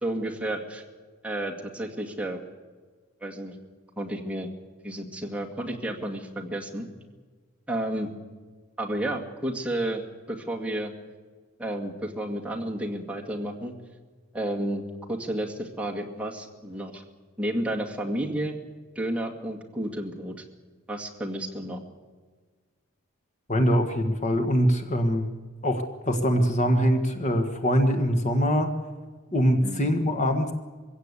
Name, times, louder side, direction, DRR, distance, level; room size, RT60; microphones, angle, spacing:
voice 1, 0.0-0.8 1.2-2.4 3.2-3.5 4.0-4.5 4.8-6.9 7.7-8.1 8.8-10.0 10.3-10.9 11.6-13.7 14.3-14.8 15.1-17.0 17.4-18.6 19.0-20.3 20.9-21.8 29.6-29.8, right 1 dB, 5° right, -1 dB, 2.1 m, -31 dB
voice 2, 23.5-25.3 25.6-28.7 29.3-30.5, equal, 35° left, 5 dB, 1.6 m, -23 dB
23.0 x 16.5 x 8.4 m, 1.4 s
head